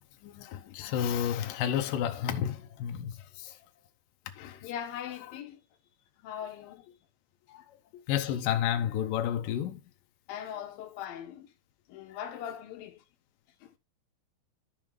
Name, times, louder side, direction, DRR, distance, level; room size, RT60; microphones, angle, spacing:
voice 1, 0.2-3.1 3.4-3.5 4.4-4.6 7.5-7.6 8.1-9.8, left 10 dB, 85° left, 1.9 m, -31 dB
voice 2, 4.6-5.6 6.2-6.9 7.9-8.0 10.3-11.5 11.9-13.0 13.6-13.7, left 9 dB, 70° left, 2.4 m, -40 dB
13.5 x 5.3 x 3.2 m
omnidirectional pair, 5.3 m